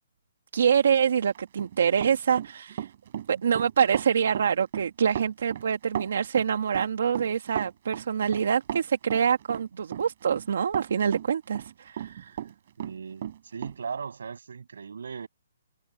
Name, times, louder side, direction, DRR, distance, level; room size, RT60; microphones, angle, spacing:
voice 1, 0.5-2.9 3.3-12.4, right 7 dB, 60° right, 1.9 m, -25 dB
Run, 1.3-12.5 12.8-13.8, right 10 dB, 40° right, 4.5 m, -35 dB
voice 2, 12.8-15.3, right 6 dB, 80° right, 7.4 m, -38 dB
hypercardioid pair, 175°, 0 cm